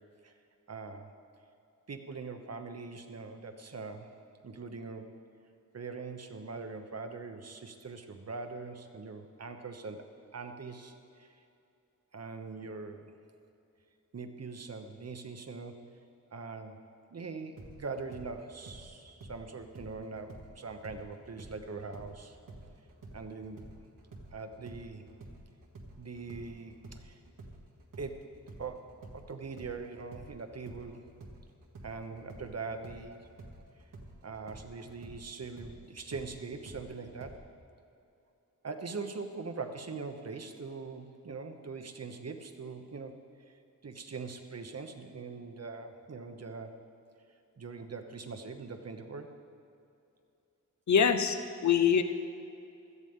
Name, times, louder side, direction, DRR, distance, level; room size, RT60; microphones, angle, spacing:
voice 1, 0.7-1.1 1.9-4.1 4.4-5.2 5.7-11.4 12.1-13.2 14.1-15.8 16.3-16.8 17.1-22.4 23.1-23.7 24.3-25.1 26.0-27.2 28.0-31.1 31.8-33.3 34.2-37.4 38.6-43.2 43.5-46.8 47.6-49.4, right 4 dB, 50° right, 6 dB, 1.0 m, -42 dB
sound 1, 17.6-21.1 21.4-29.2 29.6-37.4, right 2 dB, 75° right, 1.6 m, -50 dB
voice 2, 50.9-52.0, left 7 dB, 60° left, 9 dB, 0.7 m, -24 dB
16.5 x 13.5 x 3.7 m, 2.6 s
wide cardioid pair, 130°, 32 cm